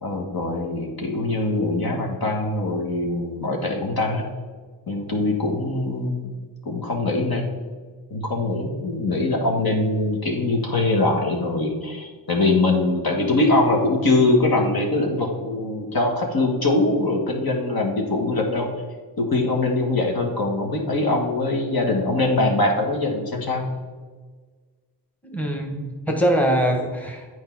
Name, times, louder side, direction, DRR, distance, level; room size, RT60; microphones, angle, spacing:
voice 1, 0.0-4.3 4.9-6.3 6.6-7.5 8.1-18.7 19.2-23.7, left 2 dB, 50° left, 1 dB, 1.5 m, -22 dB
voice 2, 25.2-27.3, equal, 5° left, 2 dB, 1.3 m, -23 dB
8.0 x 4.8 x 4.6 m, 1.4 s
supercardioid pair, 45°, 45 cm